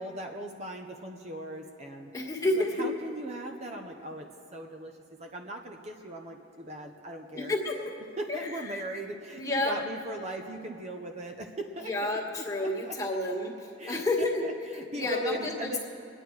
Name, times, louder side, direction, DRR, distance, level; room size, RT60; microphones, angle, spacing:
voice 1, 0.0-2.1 2.6-7.5 8.2-12.2 12.6-13.2 13.8-14.0 14.4-15.8, right 1 dB, 35° right, 3 dB, 0.7 m, -39 dB
voice 2, 2.1-2.9 7.3-7.8 8.3-8.6 9.3-9.8 11.8-14.5 14.9-15.8, left 1 dB, 20° left, -3 dB, 1.7 m, -30 dB
24.5 x 9.9 x 4.7 m, 2.6 s
head